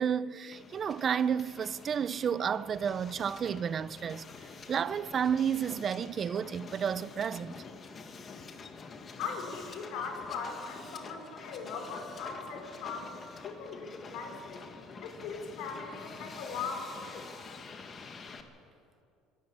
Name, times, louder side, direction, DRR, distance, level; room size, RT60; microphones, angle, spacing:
voice 1, 0.0-4.3 4.7-7.6, right 7 dB, 35° right, 0.5 m, -31 dB
Hiss, 0.5-18.4, left 4 dB, 30° left, 1.7 m, -47 dB
voice 2, 9.2-14.6 15.0-17.3, left 5 dB, 70° left, 4.3 m, -40 dB
24.5 x 12.5 x 8.7 m
cardioid pair, 125°, 0 cm